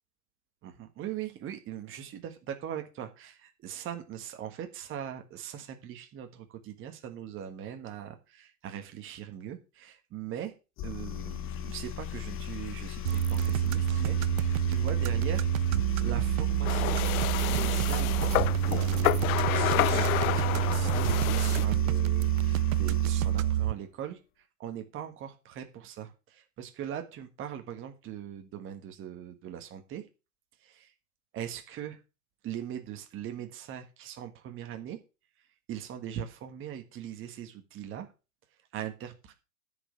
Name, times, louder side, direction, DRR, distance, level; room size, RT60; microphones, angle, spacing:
voice 1, 0.6-10.5 10.8-17.0 17.5-18.2 18.7-30.1 30.6-30.9 31.3-32.0 32.4-35.0 35.4-38.1 38.7-39.3, right 10 dB, 25° right, 6 dB, 1.5 m, -41 dB
sound 1, 10.8-23.7, left 9 dB, 30° left, 1.0 m, -38 dB
sound 2, 13.0-23.7, right 12 dB, 65° right, 0.6 m, -27 dB
sound 3, 16.6-21.7, left 16 dB, 70° left, 0.5 m, -30 dB
10.0 x 5.5 x 6.2 m, 0.30 s
hypercardioid pair, 120°, 45 cm